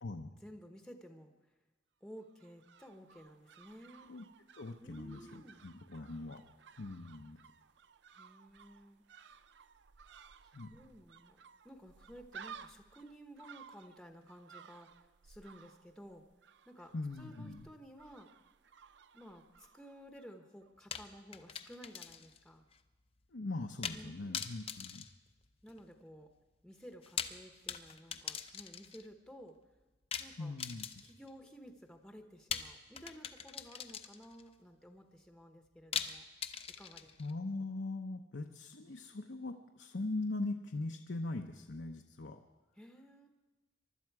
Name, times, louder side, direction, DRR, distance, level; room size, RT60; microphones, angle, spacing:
voice 1, 0.4-1.3 2.0-4.1 4.8-5.6 8.1-9.0 10.4-11.4 11.6-16.2 16.6-18.3 19.1-22.7 23.9-24.3 25.6-26.3 26.6-29.6 30.2-30.5 31.0-36.2 36.8-37.1 42.8-43.3, equal, 5° left, 4 dB, 1.0 m, -54 dB
sound 1, 2.2-20.4 20.6-20.7, right 6 dB, 70° right, 0.5 m, -57 dB
voice 2, 4.5-6.4 6.8-7.4 10.5-10.7 16.9-17.7 23.3-25.1 30.4-31.0 37.2-42.4, left 2 dB, 75° left, 4 dB, 0.8 m, -41 dB
sound 2, 20.9-22.4 22.7-22.8 23.8-24.1 24.3-25.9 26.9-29.1 30.1-31.3 32.5-34.4 35.9-37.3, left 7 dB, 30° left, 0.6 m, -42 dB
23.5 x 12.0 x 4.7 m, 1.2 s
head